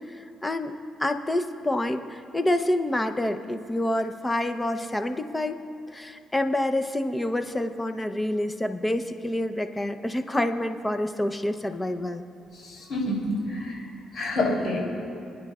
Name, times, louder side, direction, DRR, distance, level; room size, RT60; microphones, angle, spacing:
voice 1, 0.1-5.6 5.9-12.3, left 1 dB, 15° left, 8 dB, 0.7 m, -27 dB
voice 2, 12.6-13.8 14.1-14.8, left 1 dB, 50° left, -2 dB, 3.2 m, -27 dB
28.5 x 10.0 x 2.4 m, 2.5 s
cardioid pair, 90°, 0 cm